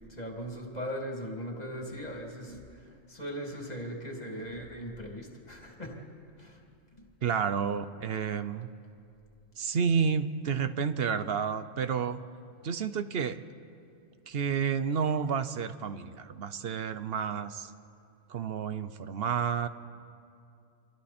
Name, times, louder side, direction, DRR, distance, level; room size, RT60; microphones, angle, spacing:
voice 1, 0.1-5.9 6.4-6.6, equal, 30° left, 0 dB, 2.8 m, -39 dB
voice 2, 7.2-8.7 9.6-12.2 12.6-13.4 14.3-17.7 18.3-19.7, right 6 dB, 55° right, 12 dB, 0.9 m, -30 dB
29.5 x 24.5 x 4.3 m, 2.5 s
omnidirectional pair, 1.3 m